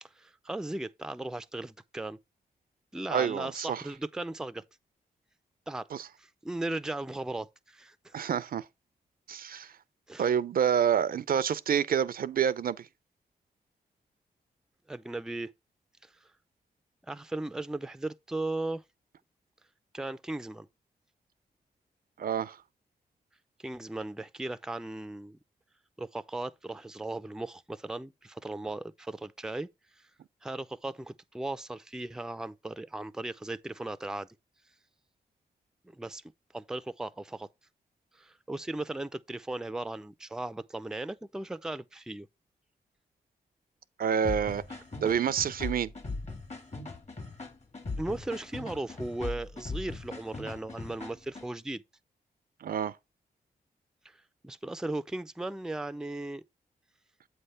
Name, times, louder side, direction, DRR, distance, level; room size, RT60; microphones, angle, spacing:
voice 1, 0.0-2.2 2.9-4.6 5.7-5.9 6.2-8.2 10.1-10.3 14.9-15.5 16.0-16.1 17.1-18.8 19.9-20.7 23.6-25.4 26.0-29.7 30.4-34.3 35.9-36.2 36.5-37.5 38.1-42.3 48.0-51.8 54.0-54.2 54.4-56.4, right 2 dB, 5° right, 0.4 m, -37 dB
voice 2, 3.1-3.8 5.9-6.1 8.1-8.6 9.3-9.7 10.2-12.9 22.2-22.6 44.0-44.6 45.0-45.9 52.6-52.9, right 8 dB, 60° right, 0.5 m, -28 dB
sound 1, 44.2-51.5, left 3 dB, 40° left, 1.7 m, -39 dB
7.8 x 3.3 x 5.6 m
cardioid pair, 55°, 17 cm